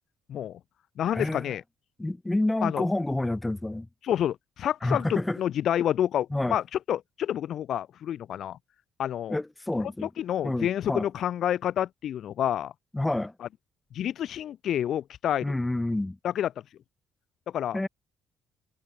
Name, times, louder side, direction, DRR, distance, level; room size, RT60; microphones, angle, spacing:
voice 1, 0.3-0.6 1.0-1.6 2.6-2.9 4.0-8.6 9.0-9.4 10.0-12.7 13.4-13.5 13.9-15.6 16.2-16.5 17.5-17.8, left 10 dB, 65° left, 1.8 m, -28 dB
voice 2, 1.1-1.5 2.0-3.9 4.8-5.4 6.3-6.6 9.3-10.1 10.4-11.1 12.9-13.3 15.4-16.2 17.7-17.9, left 2 dB, 10° left, 4.4 m, -28 dB
supercardioid pair, 70°, 0 cm